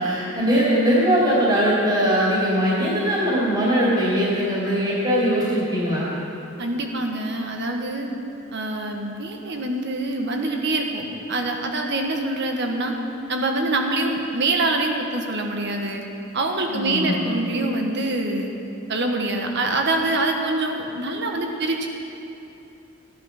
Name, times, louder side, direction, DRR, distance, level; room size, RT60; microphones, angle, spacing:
voice 1, 0.0-6.1 16.7-17.2, equal, 25° right, -6 dB, 2.7 m, -21 dB
voice 2, 6.6-8.1 8.5-12.9 13.3-16.0 16.3-18.5 18.9-21.9, right 2 dB, 60° right, 3 dB, 1.5 m, -25 dB
16.0 x 10.5 x 5.9 m, 2.9 s
head